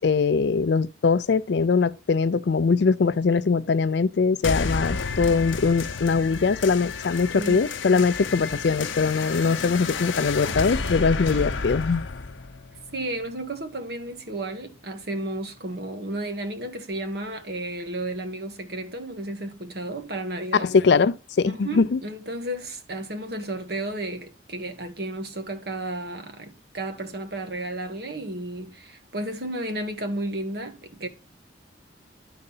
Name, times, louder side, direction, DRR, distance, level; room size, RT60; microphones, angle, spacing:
voice 1, 0.0-12.1 20.6-22.0, left 4 dB, 60° left, 0.4 m, -22 dB
sound 1, 4.4-13.4, left 4 dB, 80° left, 0.8 m, -31 dB
voice 2, 12.9-20.7 21.4-31.1, right 1 dB, 55° right, 1.4 m, -33 dB
11.5 x 3.9 x 5.5 m
head